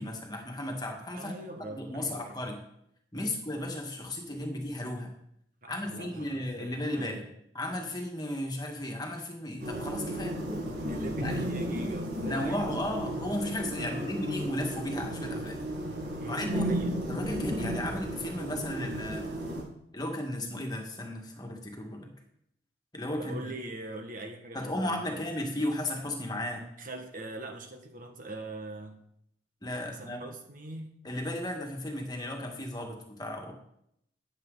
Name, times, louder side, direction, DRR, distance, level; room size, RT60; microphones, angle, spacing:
voice 1, 0.0-1.4 1.7-2.6 3.1-5.1 5.7-7.2 7.5-10.3 11.2-11.5 12.2-15.6 16.2-16.7 17.1-19.3 19.9-22.1 22.9-23.5 24.5-26.7 29.6-30.2 31.0-33.5, left 1 dB, 20° left, 2 dB, 1.9 m, -35 dB
voice 2, 1.1-2.4 3.1-3.7 5.6-7.3 10.1-12.9 13.8-14.2 16.2-16.9 23.2-25.2 26.8-29.0 29.9-30.9, right 2 dB, 50° right, 4 dB, 1.7 m, -43 dB
sound 1, 9.6-19.6, right 1 dB, 75° right, 5.9 m, -34 dB
14.5 x 9.5 x 4.0 m, 0.74 s
head